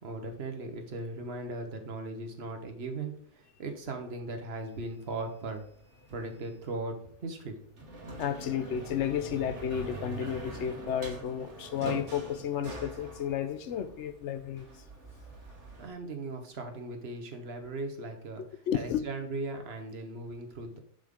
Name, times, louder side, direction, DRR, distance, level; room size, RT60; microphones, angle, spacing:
voice 1, 0.0-5.6 6.1-7.6 15.8-18.4 18.7-20.8, right 2 dB, 60° right, 5 dB, 1.3 m, -38 dB
sound 1, 4.6-6.7 7.6-15.9, right 2 dB, 75° right, 1.6 m, -44 dB
voice 2, 8.2-14.7 18.7-19.0, left 9 dB, 80° left, 10 dB, 1.0 m, -32 dB
7.3 x 6.5 x 3.7 m, 0.63 s
omnidirectional pair, 1.2 m